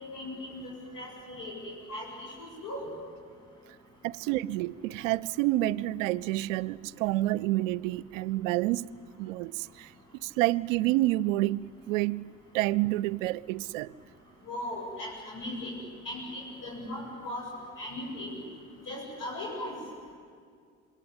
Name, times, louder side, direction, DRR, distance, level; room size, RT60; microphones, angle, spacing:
voice 1, 0.0-2.1 2.4-2.9 14.5-15.7 16.0-17.4 17.8-18.4 18.9-19.7, left 1 dB, 55° left, -2 dB, 7.9 m, -38 dB
voice 2, 4.0-8.9 9.2-9.9 10.2-13.9, right 17 dB, 75° right, 21 dB, 0.6 m, -29 dB
26.5 x 22.0 x 9.6 m, 2.1 s
hypercardioid pair, 50°, 38 cm